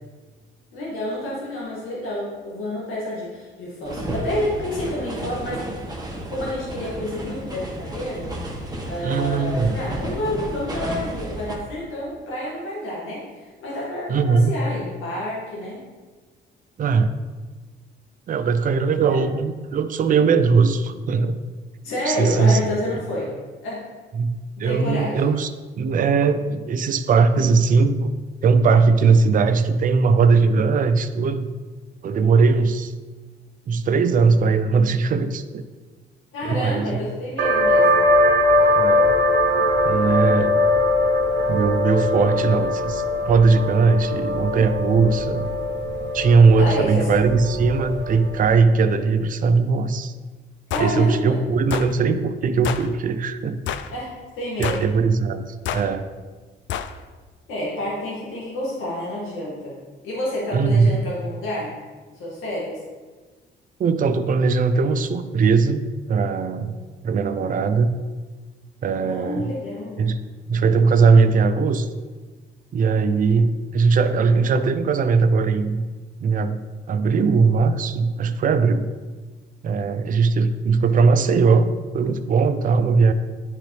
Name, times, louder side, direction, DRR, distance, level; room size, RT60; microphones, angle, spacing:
voice 1, 0.7-5.8 6.3-8.3 8.8-15.8 19.1-19.2 21.8-23.3 23.6-23.8 24.6-25.2 36.3-38.1 46.6-47.1 50.7-51.4 53.9-54.9 57.5-59.7 60.0-61.7 62.1-62.7 69.0-70.1, left 1 dB, 90° left, -6 dB, 1.9 m, -29 dB
sound 1, 3.8-11.6, right 1 dB, 20° right, 1.2 m, -32 dB
voice 2, 9.0-9.8 11.5-11.6 14.1-14.5 16.8-17.1 18.3-21.4 22.1-22.6 24.1-24.3 24.6-25.5 25.8-28.1 28.4-31.5 32.0-32.9 33.7-35.6 36.4-37.1 38.8-39.1 39.8-40.6 41.5-45.5 46.1-50.1 50.8-53.6 54.6-56.1 60.5-61.0 63.8-65.8 66.1-66.8 67.0-67.9 68.8-69.6 70.0-70.2 70.5-71.9 72.7-75.9 76.2-76.6 76.9-78.9 79.6-83.1, right 4 dB, 45° right, 10 dB, 0.5 m, -19 dB
sound 2, 37.4-48.7, left 1 dB, 65° right, 1.2 m, -21 dB
sound 3, 50.7-50.9 51.7-51.9 52.6-52.9 53.7-53.9 54.6-54.9 55.7-55.9 56.7-56.9, left 9 dB, 70° left, 0.4 m, -28 dB
9.8 x 3.9 x 3.3 m, 1.4 s
cardioid pair, 90°, 20 cm